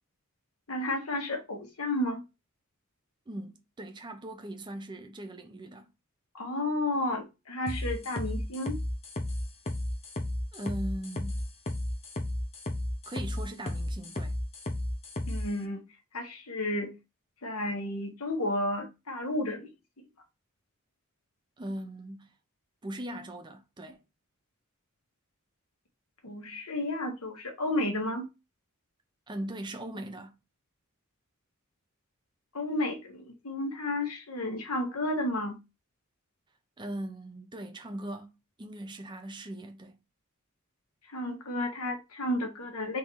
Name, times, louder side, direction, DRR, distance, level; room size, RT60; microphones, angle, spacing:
voice 1, 0.7-2.2 6.3-8.8 15.3-15.8 16.1-16.9 17.4-19.7 26.2-28.3 32.5-35.6 41.1-43.0, left 1 dB, 80° left, 1.3 m, -32 dB
voice 2, 3.3-5.9 10.5-11.4 13.1-14.3 21.6-22.3 22.8-24.0 29.3-30.4 36.8-40.0, right 1 dB, 20° right, 0.6 m, -40 dB
sound 1, 7.7-15.4, left 1 dB, 30° left, 0.8 m, -33 dB
3.7 x 2.7 x 4.6 m
head